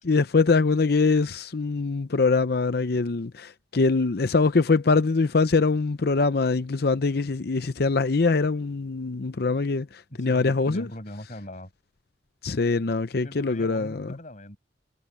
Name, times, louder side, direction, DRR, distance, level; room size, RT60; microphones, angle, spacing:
voice 1, 0.0-10.9 12.4-14.1, left 4 dB, 60° left, 0.6 m, -23 dB
voice 2, 10.1-11.7 13.2-14.6, left 1 dB, 45° left, 6.5 m, -40 dB
head